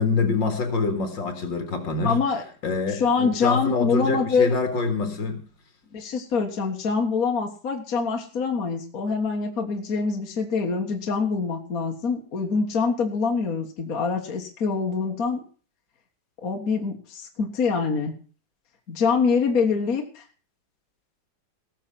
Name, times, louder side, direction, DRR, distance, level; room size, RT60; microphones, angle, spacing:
voice 1, 0.0-2.2 2.6-5.4, left 4 dB, 65° left, 2.7 m, -25 dB
voice 2, 2.0-2.4 2.9-4.5 5.9-15.4 16.4-18.1 18.9-20.2, left 5 dB, 45° left, 1.9 m, -25 dB
19.0 x 6.6 x 5.8 m
omnidirectional pair, 2.2 m